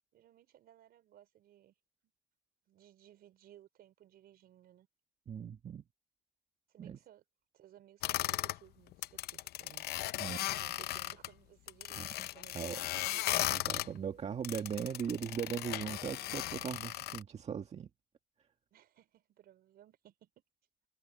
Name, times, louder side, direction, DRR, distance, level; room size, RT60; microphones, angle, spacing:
voice 1, 0.1-1.7 2.7-4.9 6.7-7.2 7.5-9.9 10.2-13.4 18.7-20.3, right 12 dB, 65° right, 5.0 m, -60 dB
voice 2, 5.3-5.8 6.8-7.0 10.2-10.4 11.9-12.3 12.5-12.8 13.5-17.9, right 7 dB, 40° right, 1.6 m, -39 dB
sound 1, 8.0-8.6 8.9-11.3 11.7-13.9 14.4-17.2, left 15 dB, 70° left, 0.7 m, -36 dB
cardioid pair, 110°, 17 cm